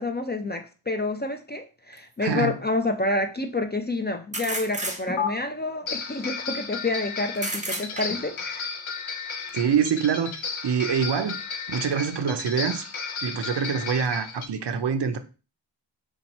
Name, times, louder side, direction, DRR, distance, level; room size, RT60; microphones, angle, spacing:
voice 1, 0.0-8.7, left 2 dB, 25° left, 0.3 m, -28 dB
sound 1, 1.9-2.0 4.3-5.4 7.4-8.4, right 1 dB, 15° right, 0.7 m, -32 dB
voice 2, 2.2-2.5 9.5-10.3 10.6-11.4 11.7-12.9 13.2-15.2, right 7 dB, 65° right, 0.5 m, -25 dB
sound 2, 5.2-5.3 5.9-14.5, left 5 dB, 85° left, 0.6 m, -34 dB
2.9 x 2.2 x 4.0 m
wide cardioid pair, 45°, 46 cm